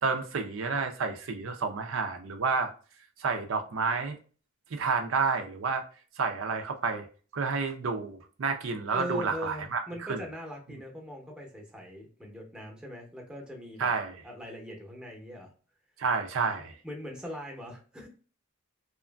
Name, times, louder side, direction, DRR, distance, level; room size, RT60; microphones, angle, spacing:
voice 1, 0.0-2.7 3.2-4.2 4.7-5.8 6.2-7.1 7.3-9.8 10.1-10.2 13.8-14.1 16.0-16.8, right 4 dB, 65° right, 0.5 m, -30 dB
voice 2, 8.9-13.9 14.2-15.5 16.8-18.1, equal, 5° right, 0.7 m, -41 dB
2.9 x 2.4 x 2.2 m
head